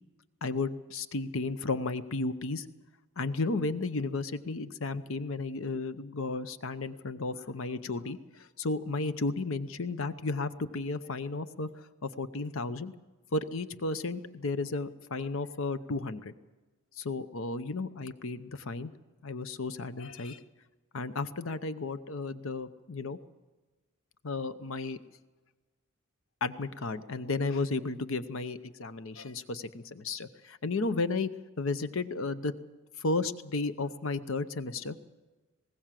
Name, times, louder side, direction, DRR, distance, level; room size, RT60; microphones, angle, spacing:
voice 1, 0.4-2.7 3.2-12.9 13.3-16.3 17.0-18.9 19.2-20.4 20.9-23.2 24.2-25.0 26.4-31.3 31.6-32.5 33.0-35.0, left 3 dB, 70° left, 13 dB, 0.8 m, -33 dB
20.5 x 17.5 x 7.5 m, 1.2 s
head